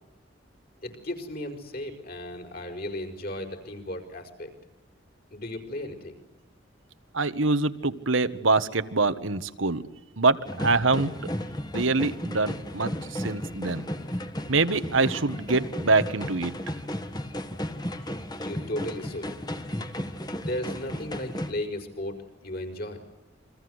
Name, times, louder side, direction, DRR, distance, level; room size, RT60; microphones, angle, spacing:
voice 1, 0.8-4.5 5.3-6.2 18.4-19.3 20.3-23.0, left 1 dB, 50° left, 4 dB, 5.4 m, -35 dB
voice 2, 7.1-9.8 10.2-11.1 11.7-13.8 14.5-16.5, right 3 dB, 85° right, 11 dB, 1.6 m, -24 dB
sound 1, 10.5-21.5, equal, 20° left, 1.7 m, -34 dB
29.5 x 24.0 x 8.1 m, 0.90 s
head